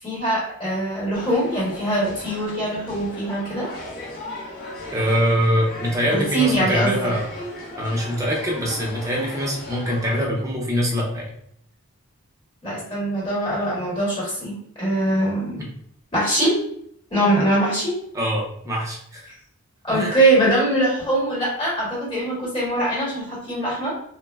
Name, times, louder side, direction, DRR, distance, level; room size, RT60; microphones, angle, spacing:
voice 1, 0.0-3.7 6.1-7.1 12.6-15.6 16.1-16.6 17.1-17.9 19.8-23.9, right 1 dB, 20° left, -6 dB, 1.1 m, -22 dB
sound 1, 1.1-10.2, left 1 dB, 40° left, 0.5 m, -37 dB
voice 2, 4.9-7.2 7.8-11.3 18.1-19.3 19.9-20.2, equal, 15° right, -3 dB, 0.5 m, -23 dB
3.1 x 2.0 x 2.2 m, 0.70 s
head